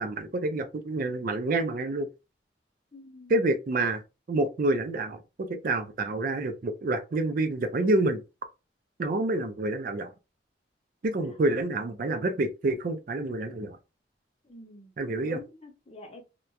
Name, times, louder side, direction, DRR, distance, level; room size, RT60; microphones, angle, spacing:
voice 1, 0.0-2.1 3.3-4.0 4.3-8.2 9.0-10.1 11.0-13.8 15.0-15.4, right 2 dB, 50° right, 0.4 m, -28 dB
voice 2, 2.9-3.4 11.0-11.4 14.4-16.2, left 2 dB, 30° left, 0.6 m, -48 dB
2.9 x 2.2 x 2.4 m
head